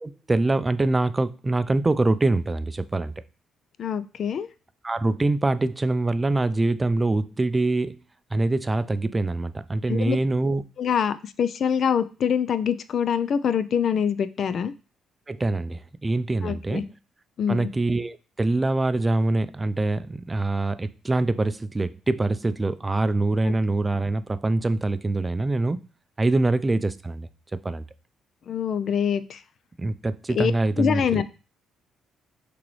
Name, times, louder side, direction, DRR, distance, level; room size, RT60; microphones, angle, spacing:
voice 1, 0.0-3.1 4.8-8.0 8.3-10.6 15.3-16.9 17.5-25.8 26.2-27.3 27.6-27.8 29.8-31.2, right 2 dB, 25° right, 13 dB, 0.4 m, -24 dB
voice 2, 3.8-4.5 9.9-10.2 10.8-14.7 16.4-16.8 17.4-17.7 23.4-23.5 28.5-29.4 30.3-30.5 30.8-31.2, left 7 dB, 55° left, 15 dB, 0.3 m, -24 dB
5.8 x 2.9 x 3.1 m, 0.34 s
hypercardioid pair, 50°, 0 cm